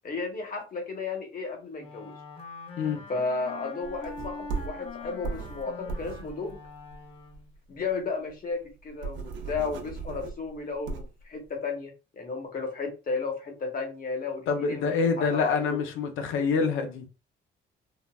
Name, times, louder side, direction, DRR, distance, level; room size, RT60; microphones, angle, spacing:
voice 1, 0.0-2.1 3.1-6.6 7.7-15.8, left 4 dB, 45° left, 1.1 m, -34 dB
Wind instrument woodwind instrument, 1.8-7.5, left 4 dB, 30° left, 0.7 m, -43 dB
sound 1, 3.8-7.6 7.9-8.0 8.3-8.4 8.7-11.2, right 4 dB, 70° right, 0.7 m, -37 dB
voice 2, 14.5-17.1, left 5 dB, 90° left, 0.6 m, -26 dB
3.7 x 2.1 x 2.3 m
cardioid pair, 90°, 20 cm